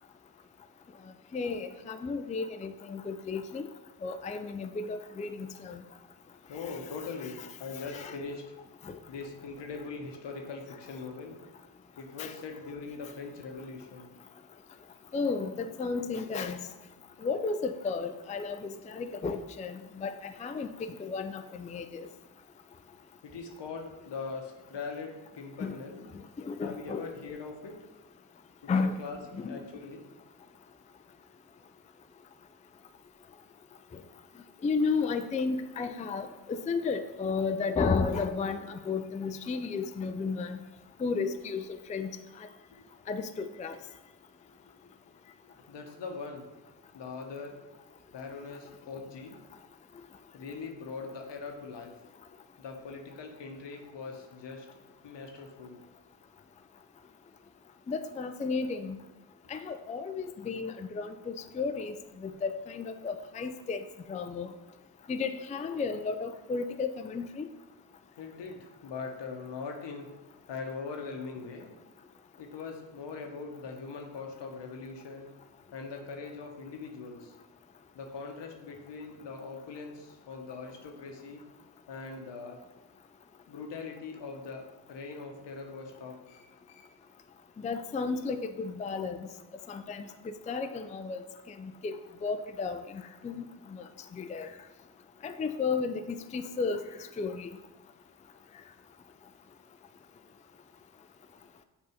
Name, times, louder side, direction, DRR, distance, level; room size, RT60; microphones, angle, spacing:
voice 1, 1.3-3.7 4.0-5.8 6.6-6.8 7.9-8.1 8.8-9.0 12.2-12.3 15.1-16.6 17.2-22.1 25.6-25.8 26.4-27.1 28.7-29.0 29.3-29.6 34.6-40.6 41.0-42.1 43.1-43.8 57.9-59.0 59.5-62.0 62.2-63.8 64.1-64.5 65.1-67.5 87.6-89.2 89.7-91.2 91.6-93.4 93.7-93.8 94.1-94.5 95.2-97.5, left 4 dB, 20° left, 9 dB, 0.4 m, -33 dB
voice 2, 6.5-8.4 9.1-11.4 12.0-14.1 23.2-26.0 26.6-27.8 28.6-28.7 29.0-30.0 45.7-46.5 46.9-47.6 48.1-49.4 50.3-51.9 52.6-54.7 55.0-55.8 68.2-70.1 70.5-71.7 72.4-75.3 75.7-77.3 77.9-81.4 81.9-82.6 83.5-86.4 86.7-86.9, left 4 dB, 70° left, 3 dB, 1.0 m, -41 dB
7.1 x 2.7 x 4.9 m, 1.1 s
supercardioid pair, 45°, 44 cm